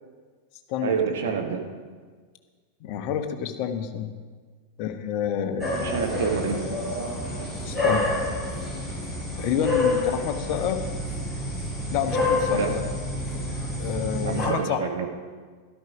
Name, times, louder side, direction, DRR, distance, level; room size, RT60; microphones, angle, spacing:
voice 1, 0.8-1.6 5.8-6.6 12.5-12.7 14.2-15.1, right 6 dB, 60° right, 3 dB, 1.6 m, -27 dB
voice 2, 2.8-4.1 4.8-5.9 7.6-8.1 9.4-10.8 11.9-12.8 13.8-14.8, left 8 dB, 45° left, 7 dB, 1.2 m, -28 dB
sound 1, 5.6-14.5, left 2 dB, ahead, 5.0 m, -28 dB
12.5 x 12.5 x 5.0 m, 1.5 s
figure-of-eight pair, 90°, 0 cm